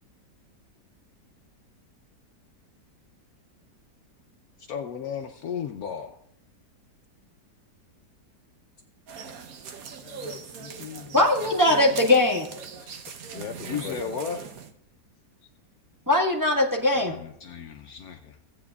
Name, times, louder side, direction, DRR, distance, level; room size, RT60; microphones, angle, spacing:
voice 1, 4.6-6.2 13.7-14.4 17.0-18.4, left 7 dB, 65° left, 5 dB, 1.0 m, -34 dB
sound 1, 9.1-14.7, right 6 dB, 60° right, 1.2 m, -40 dB
voice 2, 10.0-12.0 12.8-13.0 13.3-14.1, left 8 dB, 80° left, 10 dB, 1.4 m, -40 dB
voice 3, 11.1-12.4 16.1-17.2, left 1 dB, 10° right, -3 dB, 1.3 m, -20 dB
16.0 x 8.5 x 2.4 m, 0.75 s
omnidirectional pair, 1.9 m